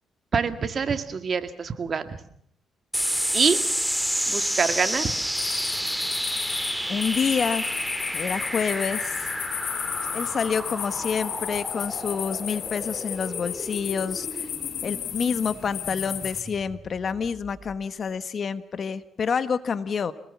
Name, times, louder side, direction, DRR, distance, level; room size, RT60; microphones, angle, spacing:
voice 1, 0.3-2.2 3.3-3.6 4.3-5.2, right 5 dB, 45° right, 10 dB, 2.1 m, -25 dB
sound 1, 2.9-17.7, equal, 5° right, 1.9 m, -31 dB
sound 2, 5.3-16.4, left 10 dB, 75° left, 3.8 m, -33 dB
voice 2, 6.9-7.8 8.1-9.3 10.1-14.5 14.8-20.1, left 6 dB, 50° left, 13 dB, 1.4 m, -28 dB
27.0 x 19.5 x 7.2 m, 0.66 s
cardioid pair, 90°, 0 cm